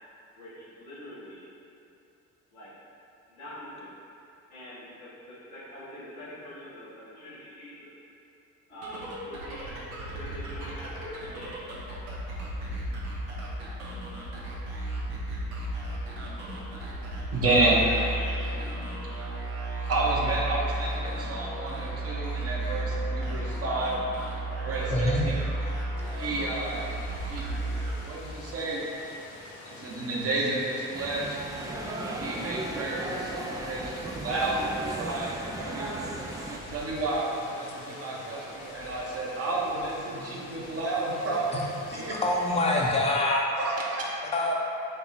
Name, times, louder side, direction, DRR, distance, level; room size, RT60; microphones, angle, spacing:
voice 1, 0.4-1.4 2.5-2.7 3.3-3.9 4.5-7.9 8.7-9.8 10.1-11.8 17.8-18.4, left 1 dB, 85° left, -11 dB, 1.3 m, -44 dB
sound 1, 8.7-28.5, right 2 dB, 75° right, 0.9 m, -34 dB
voice 2, 17.2-17.8 19.9-24.0 24.6-25.4 26.1-26.8 27.2-27.5 28.0-28.8 29.6-31.4 32.1-36.0 36.7-42.1 43.5-44.4, right 2 dB, 35° right, -4 dB, 1.0 m, -30 dB
voice 3, 24.9-25.2 41.5-41.6 41.9-43.4 44.3-44.5, left 2 dB, 15° left, -2 dB, 0.7 m, -25 dB
Rain, 26.0-42.9, left 2 dB, 60° left, 0.8 m, -46 dB
sound 2, 30.9-36.6, right 2 dB, 10° right, 0.4 m, -36 dB
4.4 x 2.9 x 4.1 m, 2.7 s
figure-of-eight pair, 50°, 41 cm